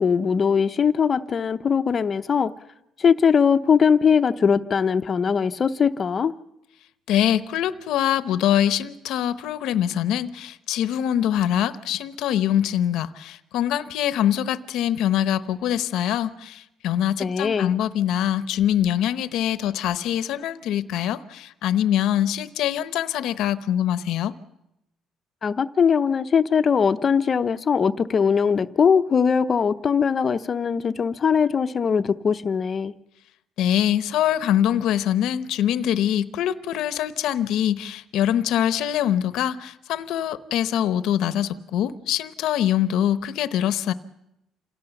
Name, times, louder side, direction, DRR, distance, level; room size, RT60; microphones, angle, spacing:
voice 1, 0.0-2.5 3.0-6.3 17.2-17.7 25.4-32.9, left 6 dB, 40° left, 0.8 m, -21 dB
voice 2, 7.1-24.3 33.6-43.9, left 11 dB, 80° left, 0.9 m, -24 dB
27.0 x 17.5 x 7.1 m
cardioid pair, 110°, 0 cm